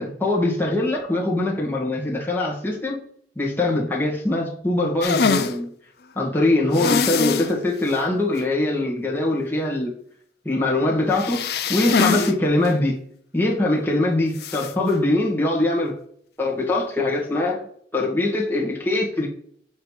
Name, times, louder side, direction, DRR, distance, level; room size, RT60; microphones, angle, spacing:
voice 1, 0.0-3.0 3.3-5.7 6.1-9.9 10.4-13.0 13.3-15.9 16.4-17.6 17.9-19.3, left 2 dB, 10° left, 1.6 m, -22 dB
sound 1, 5.0-5.5 6.7-7.5 7.9-8.0 8.4-8.5 11.1-12.3 12.6-12.7 14.4-14.7, left 5 dB, 60° left, 0.5 m, -23 dB
7.5 x 3.1 x 5.6 m
head